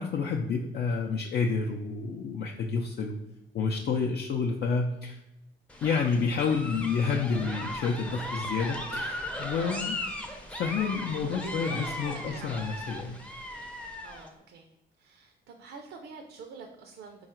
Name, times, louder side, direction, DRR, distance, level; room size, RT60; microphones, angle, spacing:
voice 1, 0.0-3.2 3.5-5.2 5.8-10.0 10.5-13.2, left 5 dB, 55° left, 0 dB, 0.4 m, -29 dB
sound 1, 5.7-14.3, left 1 dB, 5° left, 0.5 m, -37 dB
voice 2, 9.6-9.9 11.2-12.7 14.0-14.7 15.0-17.3, right 5 dB, 80° right, 3 dB, 0.5 m, -45 dB
3.8 x 2.3 x 4.3 m, 0.90 s
cardioid pair, 90°, 20 cm